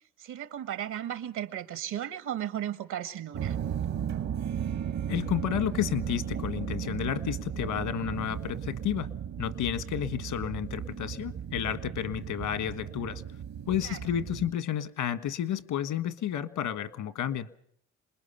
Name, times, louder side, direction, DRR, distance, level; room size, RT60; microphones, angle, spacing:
voice 1, 0.2-3.6 13.8-14.0, right 11 dB, 80° right, 1.7 m, -35 dB
sound 1, 3.3-14.5, right 9 dB, 65° right, 1.2 m, -35 dB
voice 2, 5.1-9.1 9.4-13.2 13.7-17.5, left 10 dB, 80° left, 1.5 m, -31 dB
27.5 x 21.0 x 5.7 m
cardioid pair, 90°, 30 cm